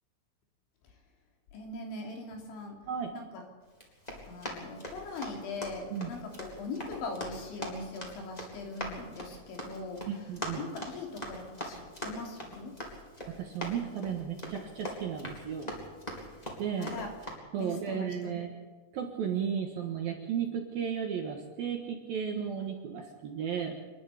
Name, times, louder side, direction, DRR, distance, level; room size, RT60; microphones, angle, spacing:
voice 1, 1.5-2.8 3.1-3.4 4.3-10.1 10.5-12.8 16.8-17.1 17.6-18.4, left 3 dB, 65° left, 2 dB, 5.2 m, -41 dB
Run, 3.7-17.3, equal, 10° left, 2.9 m, -42 dB
voice 2, 10.1-10.7 13.3-15.7 16.6-17.0 17.5-18.5 18.9-23.8, right 7 dB, 65° right, 3 dB, 2.6 m, -34 dB
27.5 x 11.5 x 8.4 m, 1.4 s
omnidirectional pair, 5.8 m